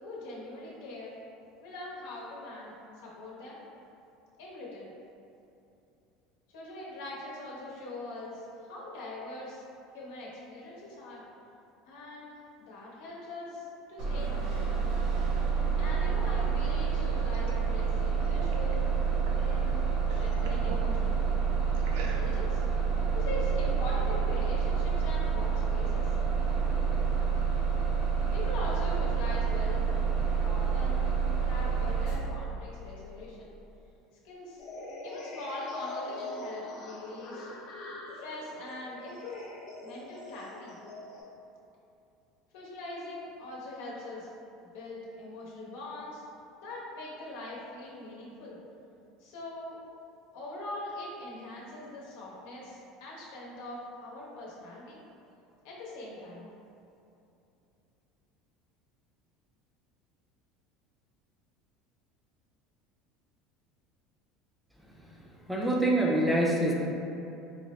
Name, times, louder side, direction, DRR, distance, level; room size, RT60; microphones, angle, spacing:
voice 1, 0.0-1.1 1.6-2.7 3.0-3.6 4.4-4.9 6.5-9.6 9.9-11.2 11.9-14.7 15.8-18.8 19.4-21.3 21.7-22.6 23.1-26.1 28.3-29.9 30.4-33.5 34.2-34.6 35.0-37.5 38.1-39.5 39.8-40.8 42.5-44.3 44.7-46.2 46.6-48.6 49.2-49.8 50.3-55.0 55.6-56.5, left 2 dB, 85° left, -5 dB, 0.9 m, -42 dB
Bus, 14.0-32.2, right 6 dB, 50° right, 0.7 m, -28 dB
sound 1, 16.5-19.5 19.8-20.9 21.7-22.6, right 4 dB, 80° right, 0.4 m, -46 dB
sound 2, 34.6-41.2, left 2 dB, 45° left, 0.6 m, -43 dB
voice 2, 64.8-66.7, right 1 dB, 5° right, -3 dB, 0.3 m, -27 dB
4.6 x 2.0 x 3.1 m, 2.8 s
cardioid pair, 170°, 0 cm